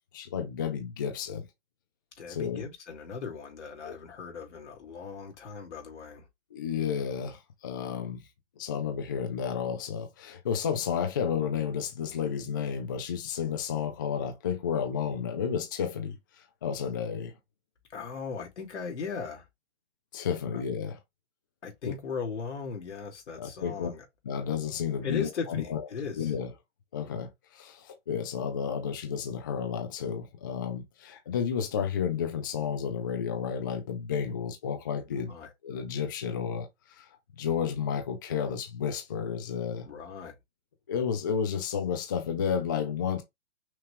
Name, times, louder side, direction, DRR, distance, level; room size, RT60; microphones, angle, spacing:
voice 1, 0.1-1.5 2.3-2.6 3.8-4.0 6.5-8.2 8.6-17.4 20.1-21.0 21.9-22.0 23.4-23.9 24.3-25.8 26.2-26.5 26.9-35.3 35.6-37.1 37.4-39.9 40.9-43.2, left 7 dB, 20° left, 0.4 m, -32 dB
voice 2, 2.2-6.3 17.9-19.5 20.5-20.6 21.6-24.0 25.0-26.3 35.1-35.5 39.8-40.3, left 5 dB, 85° left, 2.3 m, -38 dB
5.7 x 2.3 x 3.3 m
hypercardioid pair, 160°, 34 cm